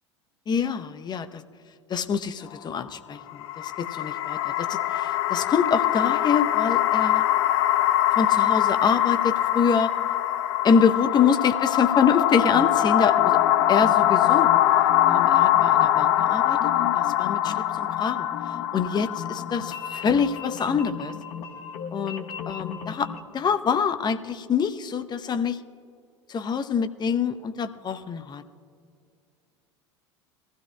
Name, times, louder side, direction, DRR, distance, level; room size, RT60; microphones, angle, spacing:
voice 1, 0.5-1.4 1.9-7.2 8.1-9.9 10.6-13.4 13.7-14.5 15.1-18.3 18.7-21.2 21.9-23.1 23.3-25.6 26.3-28.4, left 6 dB, 30° left, 10 dB, 0.8 m, -25 dB
sound 1, 3.3-20.5, left 13 dB, 65° left, 0.6 m, -23 dB
sound 2, 12.4-23.2, left 6 dB, 45° left, 1.3 m, -37 dB
23.0 x 15.5 x 2.3 m, 2.4 s
figure-of-eight pair, 75°, 15 cm